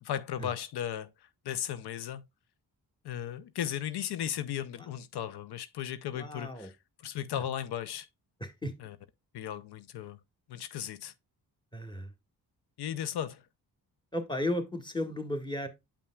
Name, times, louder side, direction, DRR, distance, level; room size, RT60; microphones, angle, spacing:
voice 1, 0.0-2.2 3.0-6.7 7.0-8.1 8.8-9.0 9.3-10.2 10.5-11.1 12.8-13.5, left 10 dB, 75° left, 0.6 m, -36 dB
voice 2, 6.1-6.7 8.4-8.7 11.7-12.1 14.1-15.7, left 1 dB, 10° left, 1.6 m, -34 dB
8.4 x 5.5 x 2.2 m
cardioid pair, 65°, 39 cm